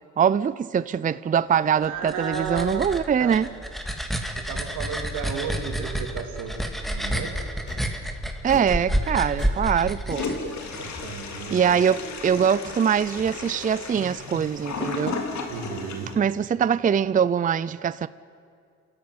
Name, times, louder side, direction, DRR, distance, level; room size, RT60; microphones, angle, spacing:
voice 1, 0.2-3.5 8.4-10.4 11.5-15.3 16.1-18.1, right 7 dB, 25° right, 0.5 m, -23 dB
sound 1, 1.8-10.8, equal, ahead, 2.2 m, -29 dB
voice 2, 1.8-2.7 3.2-3.4 4.5-7.3 10.8-11.8 15.5-16.1, right 6 dB, 85° right, 3.2 m, -33 dB
sound 2, 7.7-8.0 8.5-8.9 9.4-9.9 10.9-12.1 12.7-13.7, left 3 dB, 35° left, 7.6 m, -42 dB
Toilet flush, 10.1-16.1, left 4 dB, 65° left, 3.1 m, -34 dB
27.0 x 14.0 x 9.6 m
cardioid pair, 90°, 30 cm